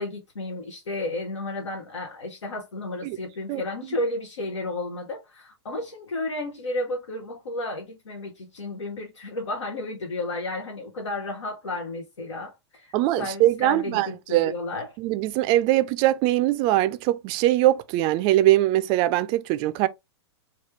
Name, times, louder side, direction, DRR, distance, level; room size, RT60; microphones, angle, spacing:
voice 1, 0.0-14.9, left 2 dB, 80° left, 0.8 m, -32 dB
voice 2, 12.9-14.5 15.0-19.9, right 15 dB, 35° right, 0.3 m, -22 dB
3.1 x 2.3 x 3.1 m
hypercardioid pair, 115°, 15 cm